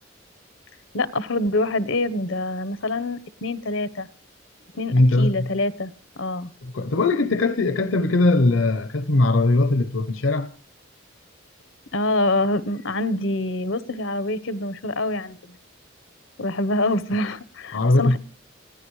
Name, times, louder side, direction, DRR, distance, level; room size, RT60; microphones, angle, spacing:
voice 1, 0.9-4.1 4.7-5.9 6.2-6.5 11.9-15.6 16.4-18.2, left 2 dB, 90° left, 1.1 m, -25 dB
voice 2, 4.9-5.5 6.6-10.5 17.7-18.2, left 2 dB, 75° left, 0.8 m, -20 dB
29.5 x 15.5 x 3.2 m
head